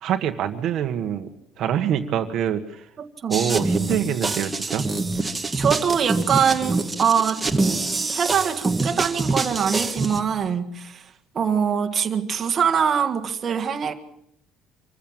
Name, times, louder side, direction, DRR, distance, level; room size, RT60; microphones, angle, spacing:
voice 1, 0.0-1.3 1.6-2.9 3.3-4.9, right 9 dB, 50° right, 6 dB, 1.4 m, -25 dB
voice 2, 3.0-3.4 5.6-7.4 8.1-11.1 11.3-13.9, right 7 dB, 30° right, 5 dB, 1.7 m, -23 dB
sound 1, 3.3-10.2, right 3 dB, 10° right, 1.5 m, -25 dB
26.0 x 15.0 x 8.8 m, 0.76 s
cardioid pair, 170°, 0 cm